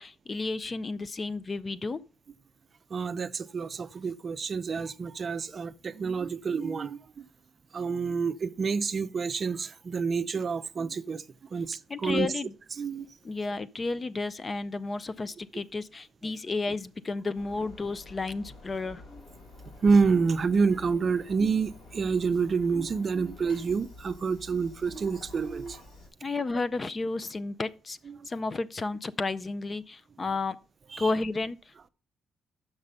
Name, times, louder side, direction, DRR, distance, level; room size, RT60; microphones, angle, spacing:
voice 1, 0.0-2.0 11.9-12.5 13.2-19.0 26.2-28.0 28.3-30.6 31.0-31.9, left 3 dB, 30° left, 0.4 m, -32 dB
voice 2, 2.9-7.2 7.7-11.2 11.5-12.3 12.8-13.1 19.8-25.8 28.2-28.3 30.9-31.1, right 5 dB, 45° right, 0.4 m, -28 dB
Engine, 17.3-26.1, left 2 dB, 75° left, 4.3 m, -49 dB
6.5 x 6.0 x 5.4 m
cardioid pair, 90°, 0 cm